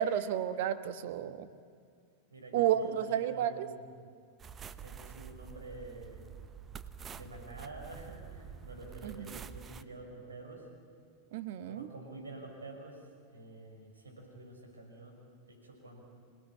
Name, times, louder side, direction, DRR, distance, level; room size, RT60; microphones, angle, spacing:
voice 1, 0.0-1.5 2.5-3.7 9.0-9.4 11.3-11.9, right 10 dB, 50° right, 12 dB, 1.2 m, -31 dB
voice 2, 2.3-4.0 4.8-6.3 7.1-10.7 11.6-15.2 15.5-16.0, right 2 dB, 75° right, 1 dB, 6.0 m, -48 dB
sound 1, 4.4-9.8, right 7 dB, 20° right, 0.8 m, -48 dB
26.5 x 18.5 x 8.7 m, 2.3 s
figure-of-eight pair, 90°, 0 cm